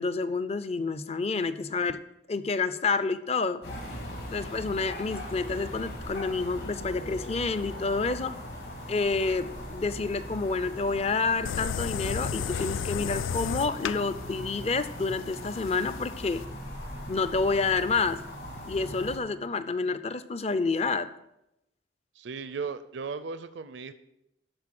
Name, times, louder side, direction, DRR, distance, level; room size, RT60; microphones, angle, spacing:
voice 1, 0.0-2.0 2.3-3.6 4.3-8.4 8.9-16.4 17.1-18.2 18.7-21.1, left 4 dB, 30° left, 12 dB, 0.5 m, -29 dB
sound 1, 3.6-19.2, equal, 60° left, 3.5 m, -40 dB
sound 2, 11.5-16.4, left 8 dB, 90° left, 0.3 m, -34 dB
voice 2, 22.2-23.9, right 5 dB, 70° right, 12 dB, 0.5 m, -36 dB
12.0 x 4.4 x 7.6 m, 0.85 s
head